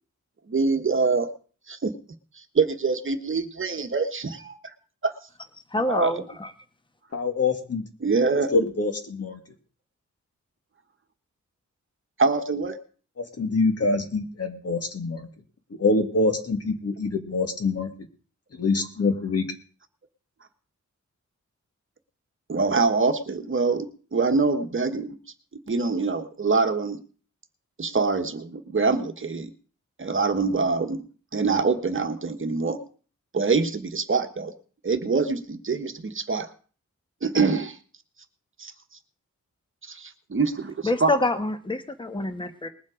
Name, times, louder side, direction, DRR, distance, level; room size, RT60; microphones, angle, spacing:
voice 1, 0.5-1.3 1.7-1.9 2.3-4.7 5.0-5.1 5.9-6.1 8.0-8.5 12.2-12.8 22.5-25.2 25.7-27.0 27.8-29.5 30.0-31.0 31.3-32.8 33.3-34.5 34.8-36.5 37.2-37.8 38.6-38.7 39.8-41.1, right 4 dB, 40° right, 7 dB, 1.3 m, -24 dB
voice 2, 5.7-6.5 40.8-42.7, left 2 dB, 15° left, 9 dB, 1.2 m, -26 dB
voice 3, 7.1-7.9 8.5-9.4 13.2-15.3 15.8-17.9 18.6-19.5, left 3 dB, 55° left, 5 dB, 2.1 m, -25 dB
20.5 x 7.5 x 5.0 m, 0.41 s
wide cardioid pair, 120°, 30 cm